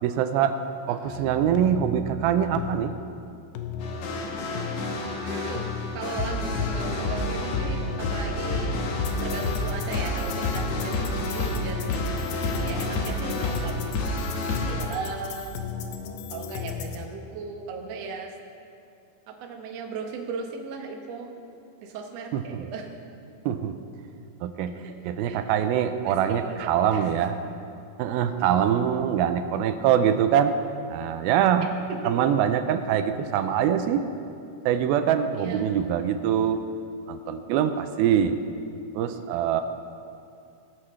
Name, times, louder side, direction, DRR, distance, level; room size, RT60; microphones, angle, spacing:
voice 1, 0.0-0.6 0.9-2.9 22.3-22.6 23.5-23.7 24.4-24.8 25.0-27.3 28.0-30.6 30.9-31.7 32.1-34.0 34.7-36.6 37.1-38.4 39.0-39.6, right 9 dB, 85° right, 9 dB, 2.5 m, -24 dB
voice 2, 0.9-1.4 5.2-8.7 9.2-12.3 12.6-14.1 14.7-15.6 16.3-18.3 19.3-21.3 21.8-22.9 24.8-25.0 25.2-25.4 26.0-27.1 31.9-32.4 35.4-35.7, right 4 dB, 60° right, 2 dB, 1.8 m, -37 dB
sound 1, 1.1-17.1, left 7 dB, 85° left, 2.7 m, -36 dB
sound 2, 3.8-14.8, left 2 dB, 60° left, 2.2 m, -29 dB
17.5 x 13.5 x 3.2 m, 2.6 s
omnidirectional pair, 4.2 m